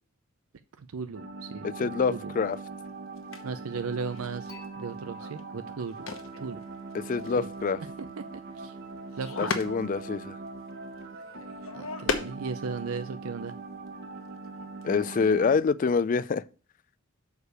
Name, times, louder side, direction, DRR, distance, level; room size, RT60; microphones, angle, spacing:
voice 1, 0.8-2.3 3.4-6.1 6.4-6.6 7.4-7.5 8.3-8.8 9.2-9.5 11.7-13.6, right 5 dB, 85° right, 0.5 m, -36 dB
sound 1, 1.1-15.6, right 3 dB, 50° right, 0.9 m, -41 dB
voice 2, 1.6-2.6 6.9-7.8 9.4-10.4 14.8-16.4, left 5 dB, 40° left, 0.3 m, -26 dB
sound 2, 2.4-2.6 3.2-13.0 13.5-13.6 13.9-14.6 14.8-15.6, left 4 dB, 75° left, 1.1 m, -39 dB
Dishes pots and pans / Chink clink, 4.5-7.6, left 3 dB, 15° left, 1.2 m, -54 dB
6.5 x 4.8 x 6.7 m
head